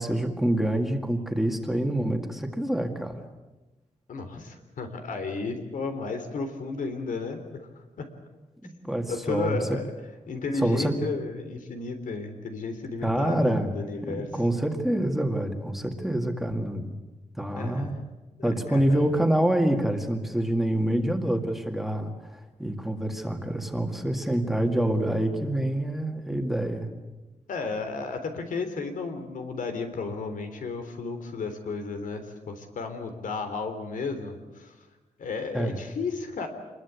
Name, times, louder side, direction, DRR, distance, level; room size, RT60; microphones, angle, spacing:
voice 1, 0.0-3.2 8.6-9.6 10.6-10.9 13.0-13.7 14.0-16.9 17.4-18.0 18.4-26.9 35.5-35.8, right 1 dB, ahead, 4 dB, 2.0 m, -26 dB
voice 2, 4.1-7.7 8.0-8.1 9.1-9.9 10.3-14.3 17.6-18.0 18.4-19.0 27.5-34.7 35.2-36.5, left 4 dB, 90° left, 7 dB, 3.6 m, -33 dB
26.5 x 22.0 x 8.3 m, 1.1 s
wide cardioid pair, 170°, 13 cm